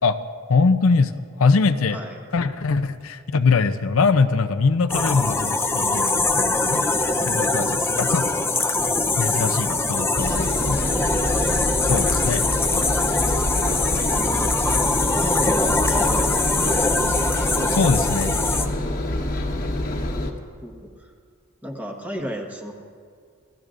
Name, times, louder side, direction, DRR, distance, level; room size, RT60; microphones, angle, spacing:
voice 1, 0.5-2.0 2.3-6.9 7.2-8.3 9.2-10.8 11.8-12.5 17.7-18.4, left 4 dB, 70° left, 9 dB, 0.6 m, -22 dB
sound 1, 4.9-18.7, left 3 dB, 10° left, 0.6 m, -22 dB
Engine, 10.1-20.3, left 1 dB, 40° left, 1.3 m, -26 dB
voice 2, 11.3-11.7 14.1-14.9 15.1-17.3 20.6-21.1 21.6-22.7, equal, 5° right, 1 dB, 1.4 m, -34 dB
27.5 x 15.5 x 2.5 m, 2.1 s
head